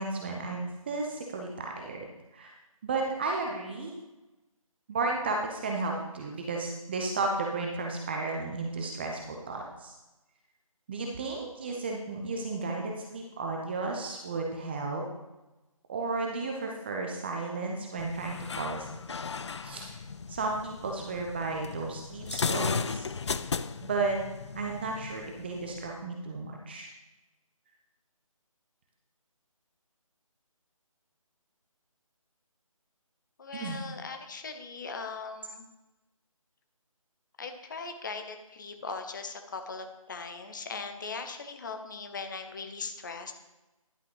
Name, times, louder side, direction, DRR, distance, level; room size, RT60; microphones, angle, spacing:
voice 1, 0.0-2.5 2.8-3.9 4.9-9.9 10.9-15.1 15.9-18.9 19.6-20.0 20.3-23.1 23.8-24.2 24.5-26.9 33.5-33.8, right 3 dB, 20° right, 1 dB, 0.7 m, -33 dB
sound 1, 18.0-26.0, left 5 dB, 50° left, 0.4 m, -36 dB
voice 2, 33.4-35.6 37.4-43.3, left 4 dB, 35° left, 6 dB, 0.9 m, -39 dB
11.0 x 5.7 x 3.9 m, 1.0 s
figure-of-eight pair, 155°, 18 cm